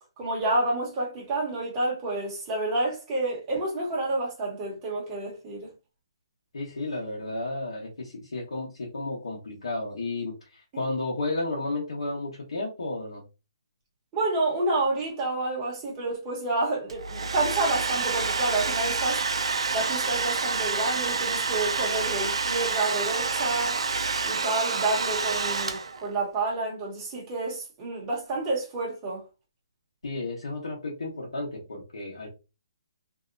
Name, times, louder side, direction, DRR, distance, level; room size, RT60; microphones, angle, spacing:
voice 1, 0.2-5.7 10.7-10.8 14.1-19.2 19.7-23.8 24.2-29.2, right 2 dB, 20° right, 0.9 m, -29 dB
voice 2, 6.5-10.3 10.8-13.2 30.0-32.3, left 2 dB, 90° left, 1.0 m, -32 dB
Domestic sounds home sounds, 16.9-26.1, right 4 dB, 85° right, 0.4 m, -28 dB
2.7 x 2.1 x 2.5 m
hypercardioid pair, 165°, 3 cm